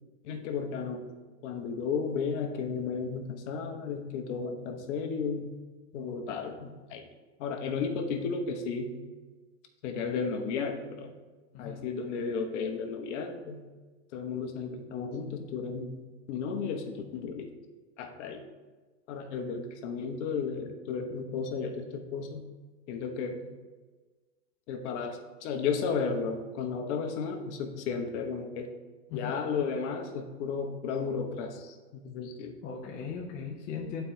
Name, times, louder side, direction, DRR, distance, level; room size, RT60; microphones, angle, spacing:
voice 1, 0.2-1.0 1.4-5.5 5.9-7.0 7.4-9.0 9.8-11.1 11.6-13.6 14.1-16.0 16.3-17.5 18.0-18.4 19.1-22.4 22.9-23.5 24.7-28.7 29.1-32.6, left 5 dB, 45° left, 4 dB, 0.9 m, -33 dB
voice 2, 32.6-34.0, left 6 dB, 20° left, -3 dB, 0.5 m, -38 dB
11.0 x 4.4 x 2.7 m, 1.3 s
hypercardioid pair, 140°, 50 cm